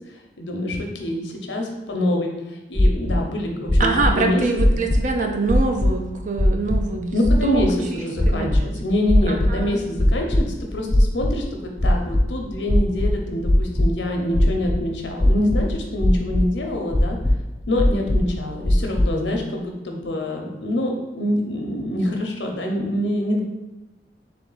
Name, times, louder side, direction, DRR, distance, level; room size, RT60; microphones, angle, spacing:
voice 1, 0.4-4.4 7.1-17.2 17.7-23.4, left 1 dB, 85° left, 1 dB, 0.8 m, -25 dB
sound 1, 2.7-3.2 3.7-4.1 4.6-5.1 5.5-5.9 6.4-6.8 7.2-7.6 8.2-8.6 9.1-9.6 10.0-10.4 10.9-11.4 11.8-12.2 12.7-13.9 14.3-14.8 15.2-15.7 16.0-16.5 16.9-17.3 17.8-18.3 18.6-19.1, left 1 dB, 15° left, 0.4 m, -18 dB
voice 2, 3.8-7.6 7.9-8.7 9.3-9.8, right 3 dB, 45° right, 3 dB, 0.5 m, -25 dB
3.4 x 3.4 x 3.9 m, 1.0 s
head